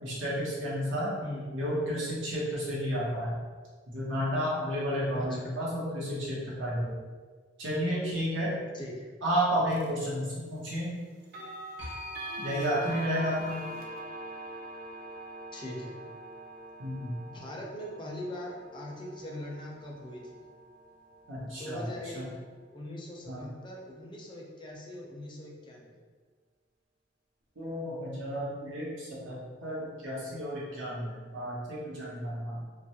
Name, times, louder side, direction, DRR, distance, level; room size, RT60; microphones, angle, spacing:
voice 1, 0.0-1.1 1.5-3.3 3.9-6.9 7.6-8.6 9.2-11.0 12.4-13.6 16.8-17.1 21.3-22.2 23.3-23.4 27.6-32.6, equal, 85° right, -6 dB, 0.8 m, -32 dB
voice 2, 5.1-5.5 8.7-9.1 15.5-16.0 17.2-20.4 21.5-22.2 22.7-26.0, left 1 dB, 25° left, -2 dB, 0.4 m, -41 dB
sound 1, 9.7-9.9 11.2-22.1, right 1 dB, 55° right, 0.3 m, -45 dB
sound 2, 11.8-22.4, equal, 75° left, 0.6 m, -48 dB
2.2 x 2.0 x 2.7 m, 1.5 s
head